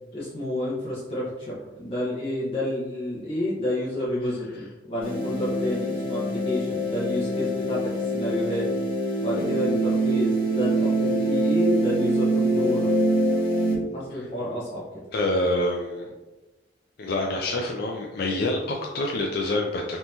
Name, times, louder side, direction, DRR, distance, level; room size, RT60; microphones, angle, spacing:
voice 1, 0.1-8.7 9.2-12.9 13.9-14.9, left 1 dB, 35° left, -9 dB, 1.1 m, -30 dB
sound 1, 5.0-13.7, right 1 dB, 10° left, 1.4 m, -24 dB
voice 2, 15.1-16.1 17.0-20.0, left 1 dB, 60° left, 0 dB, 0.4 m, -26 dB
5.3 x 2.9 x 2.9 m, 1.1 s
head